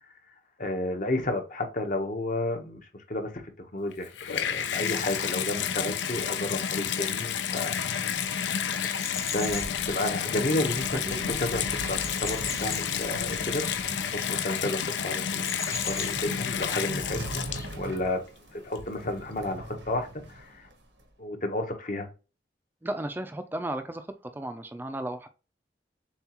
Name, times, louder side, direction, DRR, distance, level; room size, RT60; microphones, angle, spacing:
voice 1, 0.6-2.8 3.1-3.3 3.6-8.1 9.3-11.0 11.4-17.4 17.7-18.2 18.5-20.7 21.2-22.1, left 1 dB, 45° left, 0.9 m, -32 dB
Water tap faucet / Bathtub (filling or washing), 3.9-18.0 18.7-18.8, left 8 dB, 80° left, 0.5 m, -30 dB
sound 1, 7.8-17.7, left 3 dB, 15° left, 0.8 m, -42 dB
sound 2, 9.3-21.0, right 1 dB, 90° right, 1.1 m, -42 dB
voice 2, 11.1-11.4 22.8-24.1 24.3-25.3, right 1 dB, 10° right, 0.4 m, -34 dB
7.0 x 2.3 x 2.9 m
head